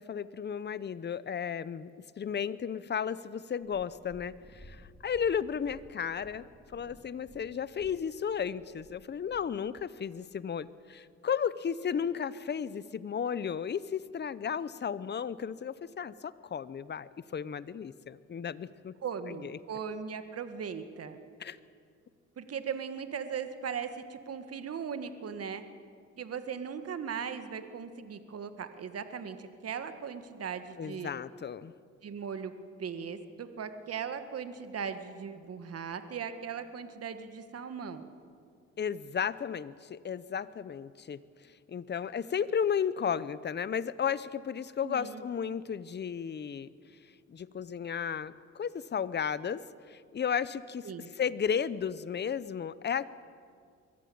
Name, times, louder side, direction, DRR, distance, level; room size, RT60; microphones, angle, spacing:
voice 1, 0.0-1.9 2.2-19.0 19.3-19.6 21.4-21.6 30.8-31.7 38.8-46.7 47.3-49.6 49.9-50.9 51.2-53.0, left 7 dB, 35° left, 17 dB, 0.8 m, -34 dB
Purr, 3.6-9.9 10.7-10.8, left 1 dB, 5° left, 2.7 m, -56 dB
voice 2, 19.0-21.2 22.4-25.6 26.2-31.1 32.0-32.5 32.8-38.1 44.8-45.2 50.8-51.1, right 7 dB, 50° right, 9 dB, 1.8 m, -38 dB
23.0 x 15.0 x 8.8 m, 2.2 s
cardioid pair, 90°, 30 cm